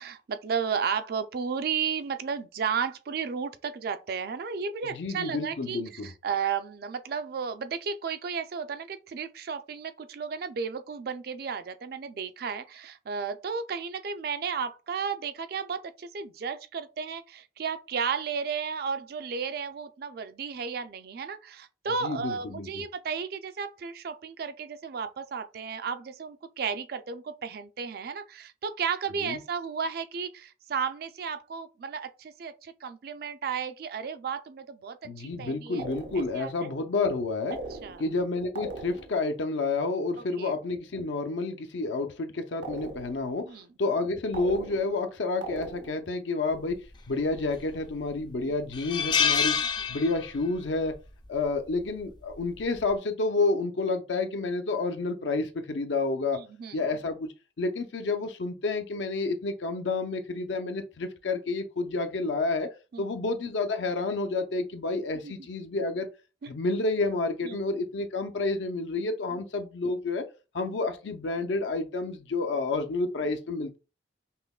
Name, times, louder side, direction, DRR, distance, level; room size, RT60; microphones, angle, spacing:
voice 1, 0.0-35.9 36.3-36.7 37.8-38.0 40.4-40.5 43.4-43.7 48.4-48.6 49.8-49.9 56.3-56.8 62.9-63.1 65.2-65.3 66.4-66.5 67.4-67.6 69.3-69.4, right 6 dB, 55° right, 0.4 m, -33 dB
voice 2, 4.8-6.1 22.0-22.7 29.2-29.4 35.0-37.6 38.0-43.5 43.8-46.8 47.1-49.5 49.9-50.9 51.3-56.4 56.7-57.3 57.6-62.7 63.0-66.1 66.5-70.2 70.5-73.8, left 3 dB, 85° left, 0.6 m, -29 dB
sound 1, 35.8-36.5 37.5-38.2 38.6-39.3 42.6-43.4 44.3-45.1 45.4-46.1, right 2 dB, 80° right, 0.7 m, -39 dB
sound 2, 47.3-47.9 48.2-48.3 48.7-50.6 50.8-51.1 52.3-52.6, left 7 dB, 25° left, 0.3 m, -27 dB
5.4 x 2.1 x 2.3 m
head